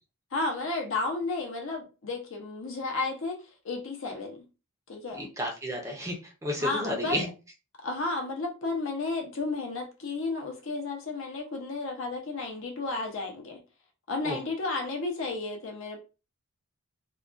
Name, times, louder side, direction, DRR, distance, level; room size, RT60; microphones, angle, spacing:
voice 1, 0.3-4.5 4.9-5.2 6.6-7.3 7.8-13.6 14.1-16.0, left 3 dB, 60° left, 0.6 m, -32 dB
voice 2, 5.2-7.3 14.2-14.4, equal, 15° right, 0.4 m, -32 dB
2.3 x 2.2 x 2.4 m
head